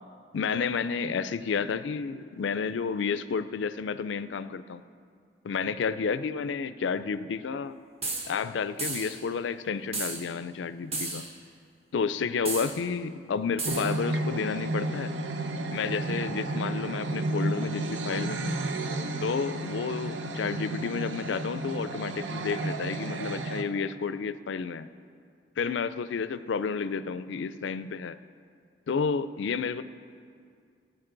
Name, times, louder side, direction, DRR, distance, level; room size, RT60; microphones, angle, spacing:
voice 1, 0.3-4.8 5.4-7.8 8.3-11.3 11.9-15.1 15.7-18.6 19.2-24.9 25.6-28.2 28.9-29.8, left 5 dB, 80° left, 14 dB, 0.4 m, -31 dB
sound 1, 8.0-8.3 8.8-9.2 9.9-10.2 10.9-11.3 12.5-12.7 13.6-13.9, right 3 dB, 35° right, 1.3 m, -33 dB
sound 2, 13.6-23.6, right 2 dB, 85° right, 0.7 m, -32 dB
17.0 x 9.2 x 3.9 m, 2.2 s
head